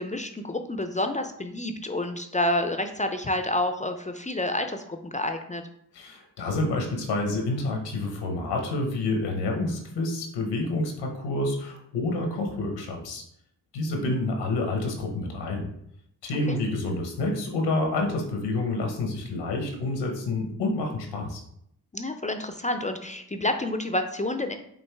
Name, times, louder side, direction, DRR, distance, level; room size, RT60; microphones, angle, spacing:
voice 1, 0.0-5.6 14.0-14.1 16.5-16.6 21.9-24.5, left 1 dB, 20° left, 6 dB, 0.4 m, -29 dB
voice 2, 5.9-13.2 13.7-15.7 16.2-21.4, left 2 dB, 90° left, 2 dB, 0.9 m, -28 dB
5.4 x 2.5 x 3.3 m, 0.72 s
supercardioid pair, 40°, 41 cm